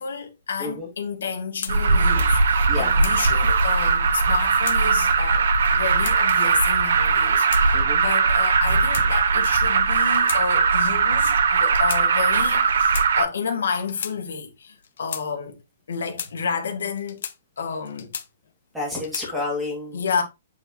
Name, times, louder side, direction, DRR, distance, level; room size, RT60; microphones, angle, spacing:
voice 1, 0.0-15.6 15.9-17.3 17.6-18.1 19.2-19.4 19.9-20.2, left 5 dB, 85° left, 2.0 m, -30 dB
sound 1, 1.6-1.8 2.6-3.2 4.2-4.8 5.6-6.2 7.0-7.6 8.5-9.4 10.1-10.4 10.7-10.9 11.7-12.0 12.7-13.1 13.8-14.2 14.8-15.3 15.9-16.3 17.0-17.4 17.8-18.5 18.9-19.3, left 8 dB, 55° left, 0.9 m, -35 dB
Alarm, 1.7-13.2, right 5 dB, 65° right, 1.2 m, -20 dB
voice 2, 18.7-20.0, left 2 dB, 5° right, 2.0 m, -30 dB
8.3 x 4.5 x 2.9 m
hypercardioid pair, 180°, 0 cm